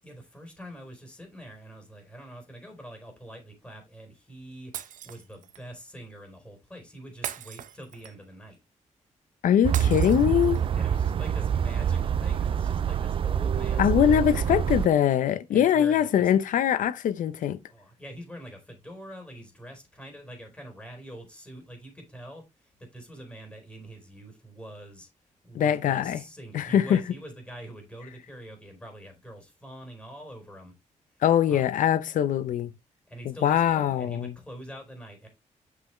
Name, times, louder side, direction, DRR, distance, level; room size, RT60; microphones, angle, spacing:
voice 1, 0.0-4.7 5.0-8.6 10.8-14.9 15.5-16.3 17.7-25.1 25.4-30.7 31.5-31.7 32.1-32.2 33.1-35.3, right 1 dB, 10° left, 4.0 m, -45 dB
Shatter, 4.7-5.6 7.2-8.3 9.7-10.7, right 10 dB, 85° right, 0.7 m, -39 dB
voice 2, 9.4-10.6 13.8-17.6 25.5-26.2 26.5-27.0 31.2-32.7 33.2-34.3, left 9 dB, 85° left, 0.8 m, -22 dB
sound 1, 9.6-14.9, right 8 dB, 45° right, 0.3 m, -26 dB
7.6 x 5.9 x 3.2 m
wide cardioid pair, 145°, 13 cm